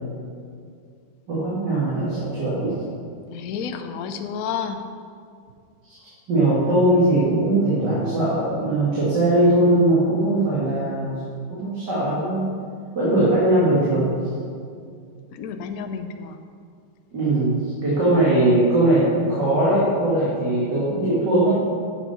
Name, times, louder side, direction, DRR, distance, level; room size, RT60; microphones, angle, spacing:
voice 1, 1.3-2.8 5.9-6.0 6.3-11.2 11.5-12.4 12.9-14.3 17.1-21.6, right 1 dB, 55° right, -9 dB, 2.7 m, -20 dB
voice 2, 3.3-4.8 15.3-16.4, left 6 dB, 70° left, 7 dB, 0.8 m, -30 dB
8.1 x 7.4 x 5.6 m, 2.3 s
omnidirectional pair, 2.2 m